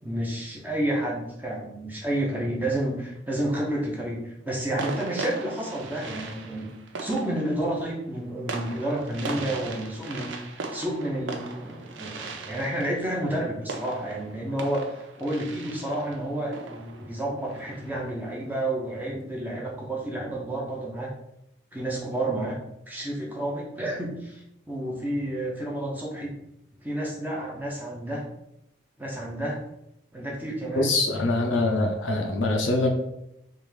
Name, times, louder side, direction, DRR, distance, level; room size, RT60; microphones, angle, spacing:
voice 1, 0.0-6.7 7.0-14.8 15.2-21.1 21.7-22.6 22.9-26.3 26.8-28.2 29.0-29.6 30.1-31.0, right 1 dB, 10° right, -3 dB, 0.6 m, -30 dB
sound 1, 3.5-3.9 4.8-18.2, right 3 dB, 80° right, 0.5 m, -39 dB
voice 2, 30.8-32.9, left 2 dB, 90° left, 2 dB, 0.7 m, -24 dB
3.4 x 2.5 x 3.2 m, 0.82 s
head